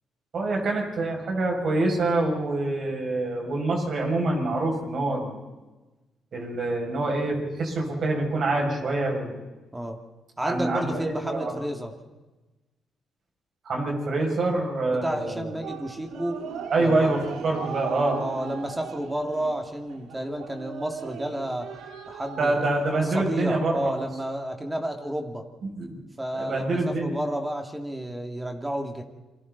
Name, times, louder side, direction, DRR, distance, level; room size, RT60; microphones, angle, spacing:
voice 1, 0.3-5.5 6.3-9.3 10.4-11.5 13.6-15.6 16.7-18.2 22.4-23.9 25.7-26.0 26.3-27.1, right 2 dB, 55° right, 0 dB, 6.7 m, -26 dB
voice 2, 10.4-11.9 14.9-16.4 16.8-17.2 18.2-21.8 22.1-25.5 26.2-29.0, right 1 dB, 15° right, 3 dB, 2.5 m, -31 dB
sound 1, 15.6-23.3, right 7 dB, 85° right, 2.1 m, -39 dB
28.5 x 23.5 x 4.1 m, 1.2 s
cardioid pair, 90°, 0 cm